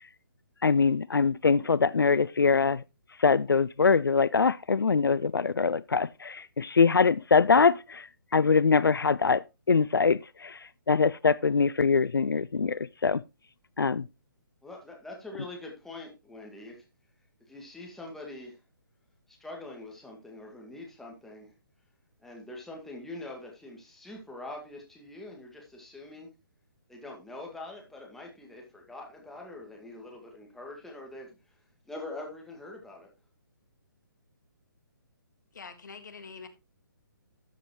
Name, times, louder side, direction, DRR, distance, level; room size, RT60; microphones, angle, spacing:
voice 1, 0.6-2.8 3.2-8.1 8.3-13.2 13.8-14.0, left 5 dB, 75° left, 0.4 m, -23 dB
voice 2, 14.6-16.8 17.4-18.6 19.3-21.5 22.2-26.3 26.9-31.6 31.9-33.1, left 2 dB, 5° left, 2.1 m, -44 dB
voice 3, 35.5-36.5, left 5 dB, 55° left, 1.7 m, -44 dB
12.5 x 7.6 x 3.1 m
figure-of-eight pair, 140°, 12 cm